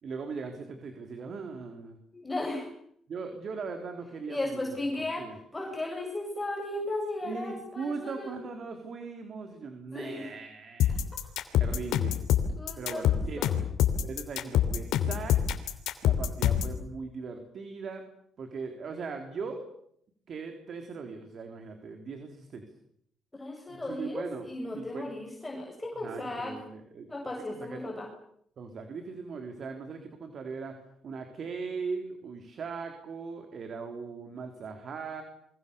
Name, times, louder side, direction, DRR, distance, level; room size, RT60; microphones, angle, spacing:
voice 1, 0.0-2.0 3.1-4.8 5.2-5.4 7.2-10.9 11.5-12.2 12.8-13.5 14.0-15.4 16.0-18.1 18.4-19.6 20.3-22.6 23.7-24.5 24.7-25.1 26.0-27.1 27.5-27.8 28.6-30.8 31.0-35.2, right 4 dB, 55° right, 5 dB, 4.1 m, -39 dB
voice 2, 2.1-2.7 4.3-5.2 5.5-8.4 9.9-10.3 10.9-11.0 12.5-13.5 23.3-26.6 27.1-28.1, left 2 dB, 15° left, -1 dB, 7.5 m, -35 dB
sound 1, 10.8-16.8, left 10 dB, 90° left, 3.1 m, -25 dB
29.0 x 24.0 x 7.2 m, 0.70 s
cardioid pair, 90°, 0 cm